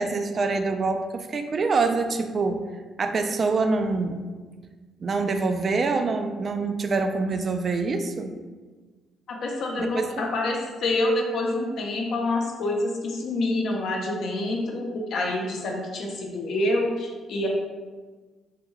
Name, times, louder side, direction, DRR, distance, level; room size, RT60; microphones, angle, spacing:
voice 1, 0.0-2.6 3.0-4.3 5.0-8.4 9.8-10.1, right 3 dB, 45° right, 7 dB, 0.3 m, -25 dB
voice 2, 9.3-17.5, left 2 dB, 70° left, 0 dB, 0.6 m, -27 dB
3.5 x 2.2 x 3.0 m, 1.3 s
cardioid pair, 85°, 0 cm